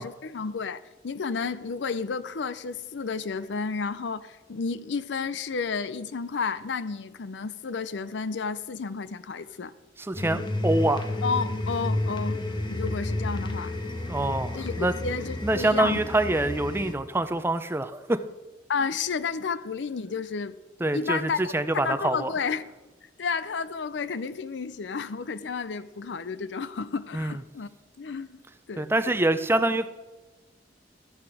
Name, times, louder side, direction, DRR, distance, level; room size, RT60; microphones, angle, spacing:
voice 1, 0.0-9.7 11.2-12.4 12.7-13.7 14.5-14.7 15.0-16.0 18.7-20.5 20.9-22.7 23.2-27.7 28.0-28.4 28.7-28.8, left 5 dB, 80° left, 0.5 m, -31 dB
voice 2, 10.0-11.0 14.1-14.9 15.4-18.2 20.8-22.3 27.1-27.4 28.8-29.9, right 2 dB, 15° right, 0.5 m, -25 dB
sound 1, 10.1-16.9, left 1 dB, 25° left, 1.0 m, -31 dB
12.5 x 8.7 x 4.8 m
head